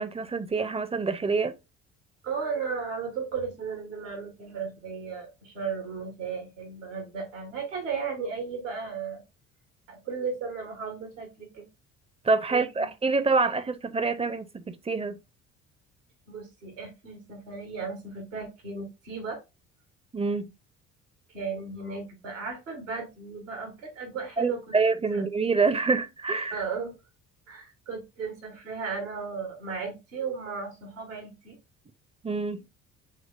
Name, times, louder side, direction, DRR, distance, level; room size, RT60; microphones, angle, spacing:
voice 1, 0.0-1.5 12.2-15.2 20.1-20.5 24.4-26.6 32.2-32.6, right 4 dB, 15° right, 0.5 m, -26 dB
voice 2, 2.2-9.2 9.9-11.6 12.5-12.9 16.3-19.4 21.3-24.6 25.1-25.2 26.5-27.0 27.5-31.6, right 5 dB, 85° right, 1.5 m, -35 dB
6.5 x 3.1 x 2.4 m
hypercardioid pair, 55°, 38 cm